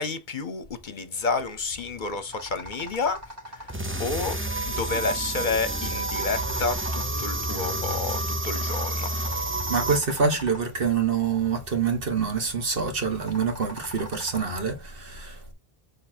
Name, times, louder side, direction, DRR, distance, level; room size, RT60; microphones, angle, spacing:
voice 1, 0.0-3.7 4.0-4.4 4.7-9.1, left 4 dB, 55° left, 0.9 m, -30 dB
sound 1, 1.6-14.8, left 2 dB, 40° right, 2.4 m, -44 dB
sound 2, 3.7-10.0, right 2 dB, 15° right, 0.6 m, -29 dB
voice 2, 9.7-15.5, right 5 dB, 60° right, 1.6 m, -26 dB
7.0 x 3.3 x 4.3 m
omnidirectional pair, 1.0 m